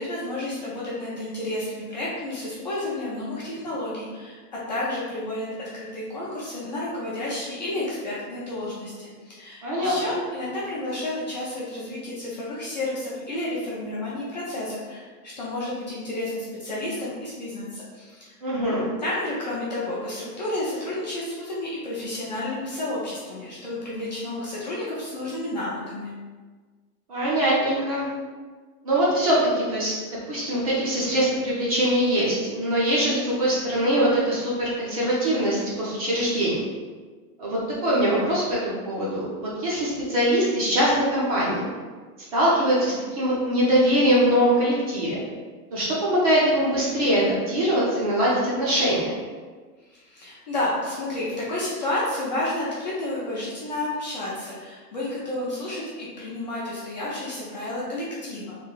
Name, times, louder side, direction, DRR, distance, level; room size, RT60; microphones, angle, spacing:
voice 1, 0.0-4.4 4.7-18.3 19.0-26.1 49.9-58.6, left 1 dB, 30° left, -7 dB, 0.4 m, -31 dB
voice 2, 9.6-10.2 18.4-18.9 27.1-28.1 28.8-29.9 30.3-36.6 37.4-41.7 42.3-45.2 45.7-49.1, equal, 25° right, -6 dB, 0.5 m, -22 dB
3.3 x 2.6 x 3.6 m, 1.4 s
supercardioid pair, 170°, 46 cm